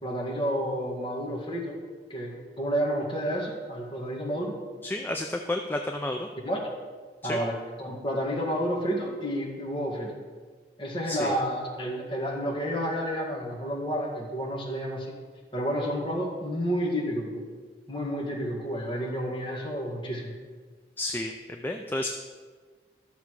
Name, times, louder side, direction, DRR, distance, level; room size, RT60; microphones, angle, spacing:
voice 1, 0.0-1.8 2.1-4.6 6.4-6.7 7.2-10.2 10.8-15.1 15.5-17.5 17.9-20.3, equal, 30° left, -2 dB, 1.9 m, -30 dB
voice 2, 4.8-6.3 7.2-7.4 11.1-11.3 21.0-22.1, left 1 dB, 10° left, 3 dB, 0.4 m, -31 dB
12.5 x 6.9 x 4.8 m, 1.5 s
head